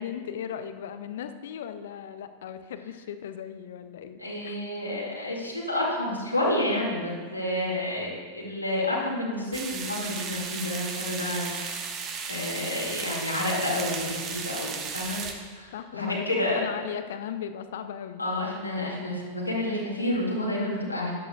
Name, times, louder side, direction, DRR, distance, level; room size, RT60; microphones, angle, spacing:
voice 1, 0.0-4.6 15.7-18.2, left 9 dB, 60° left, 10 dB, 0.6 m, -37 dB
voice 2, 4.2-11.9 12.3-16.6 18.2-21.1, left 1 dB, 85° left, -4 dB, 2.1 m, -30 dB
sound 1, 9.5-15.3, right 5 dB, 30° right, 1.0 m, -35 dB
14.0 x 10.0 x 2.3 m, 1.5 s
figure-of-eight pair, 90°, 0 cm